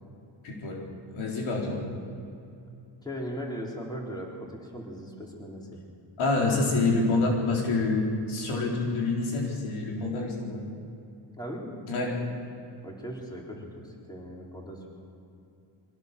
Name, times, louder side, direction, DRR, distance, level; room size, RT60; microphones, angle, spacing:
voice 1, 0.4-0.8 1.1-1.8 6.2-10.6 11.9-12.2, left 3 dB, 90° left, -1 dB, 4.2 m, -27 dB
voice 2, 3.0-5.8 11.4-11.6 12.8-14.9, equal, 10° left, -2 dB, 4.1 m, -38 dB
23.5 x 16.5 x 6.9 m, 2.6 s
cardioid pair, 120°, 47 cm